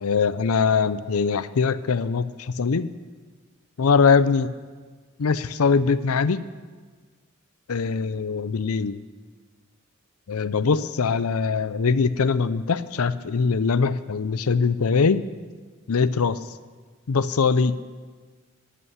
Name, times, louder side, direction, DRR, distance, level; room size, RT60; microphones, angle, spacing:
voice 1, 0.0-2.3 2.6-2.9 3.8-4.5 5.2-6.4 7.7-9.0 10.3-15.2 15.9-16.4 17.1-17.8, left 5 dB, 85° left, 15 dB, 0.6 m, -22 dB
13.0 x 8.4 x 9.8 m, 1.5 s
head